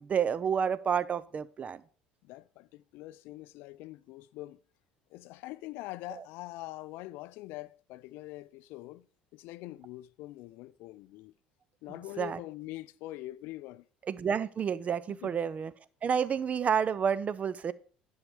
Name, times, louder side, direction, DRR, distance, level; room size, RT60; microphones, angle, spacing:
voice 1, 0.0-1.8 12.2-12.4 14.1-15.7 16.0-17.7, right 7 dB, 35° right, 0.5 m, -29 dB
voice 2, 2.2-4.6 5.1-9.1 9.3-11.3 11.8-13.8 15.1-15.4, left 17 dB, 60° left, 0.4 m, -44 dB
11.0 x 5.5 x 4.9 m
figure-of-eight pair, 60°, 4 cm